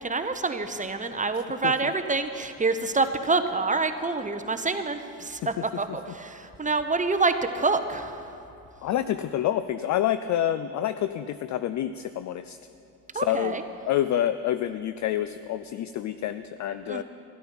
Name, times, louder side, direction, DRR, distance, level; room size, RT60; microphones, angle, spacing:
voice 1, 0.0-8.3 13.1-13.6 16.9-17.0, right 3 dB, 15° right, 9 dB, 0.9 m, -27 dB
voice 2, 8.8-12.6 13.1-13.6 13.9-17.0, left 11 dB, 40° left, 12 dB, 0.4 m, -28 dB
12.5 x 11.5 x 5.8 m, 2.8 s
hypercardioid pair, 55°, 47 cm